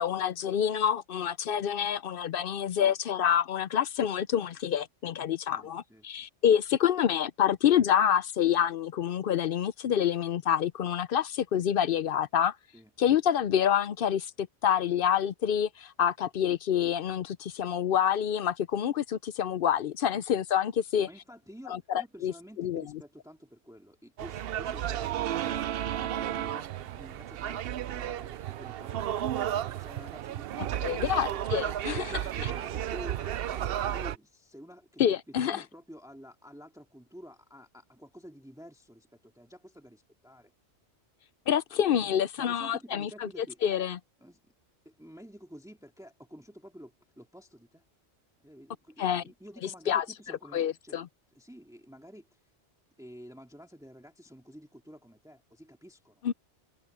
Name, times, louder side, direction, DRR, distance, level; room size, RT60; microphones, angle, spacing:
voice 1, 0.0-12.6 13.0-21.1 21.7-22.3 22.6-22.8 30.8-32.1 32.4-32.5 35.0-35.6 41.5-44.0 49.0-49.2 49.9-50.0 50.5-51.1 56.2-56.3, left 9 dB, 60° left, 0.7 m, -27 dB
voice 2, 5.5-6.1 12.7-12.9 20.1-20.4 21.1-31.2 31.9-40.5 42.0-42.1 42.4-43.6 44.2-44.5 44.8-47.8 48.4-51.0 51.3-52.4 53.0-56.2, equal, 5° right, 2.2 m, -50 dB
sound 1, 24.2-34.2, right 11 dB, 65° right, 0.7 m, -33 dB
omnidirectional pair, 1.1 m